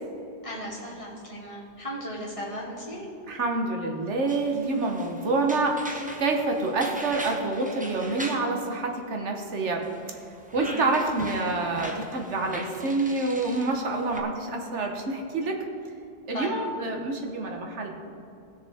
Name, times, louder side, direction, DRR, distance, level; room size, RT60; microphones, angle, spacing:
voice 1, 0.4-3.1 10.6-10.9 16.3-16.6, equal, 30° left, -6 dB, 2.7 m, -36 dB
voice 2, 3.3-9.8 10.5-15.6 16.3-18.0, right 3 dB, 80° right, 2 dB, 1.5 m, -27 dB
sound 1, 4.3-8.5 9.9-14.2, right 1 dB, 10° right, 0.8 m, -41 dB
19.0 x 6.6 x 3.5 m, 2.8 s
omnidirectional pair, 1.2 m